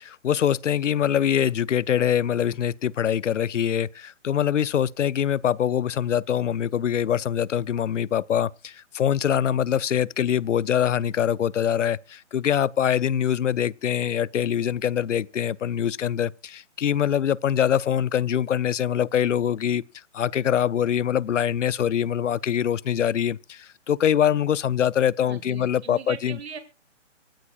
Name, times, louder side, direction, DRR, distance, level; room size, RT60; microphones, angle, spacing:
voice 1, 0.0-19.8 20.1-26.4, left 9 dB, 75° left, 0.6 m, -24 dB
voice 2, 25.2-26.6, right 7 dB, 55° right, 2.1 m, -39 dB
24.5 x 9.5 x 2.4 m
hypercardioid pair, 155°, 37 cm